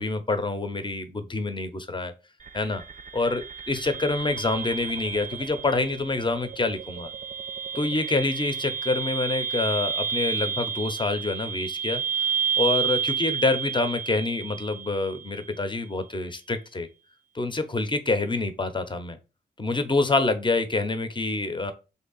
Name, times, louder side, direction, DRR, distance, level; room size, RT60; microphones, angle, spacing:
voice 1, 0.0-2.1 2.5-2.8 3.1-7.1 7.7-12.0 12.6-16.9 17.3-19.2 19.6-21.7, left 3 dB, 25° left, 0.8 m, -26 dB
sound 1, 2.4-15.4, right 7 dB, 40° right, 0.5 m, -31 dB
3.2 x 2.7 x 3.9 m
supercardioid pair, 45°, 19 cm